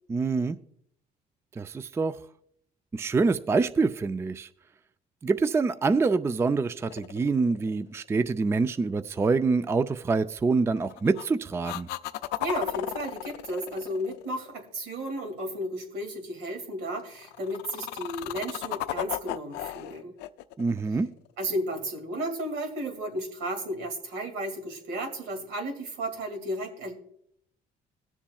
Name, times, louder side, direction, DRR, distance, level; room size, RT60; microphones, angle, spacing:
voice 1, 0.1-0.6 1.6-2.2 2.9-4.5 5.2-11.9 20.6-21.1, right 4 dB, 15° right, 0.3 m, -26 dB
sound 1, 6.8-8.1 10.7-11.3 11.6-14.9 17.2-21.5 25.3-25.4, left 15 dB, 90° left, 0.4 m, -35 dB
voice 2, 12.4-20.2 21.4-26.9, right 1 dB, 85° right, 2.2 m, -33 dB
21.5 x 7.2 x 2.3 m
cardioid pair, 110°, 17 cm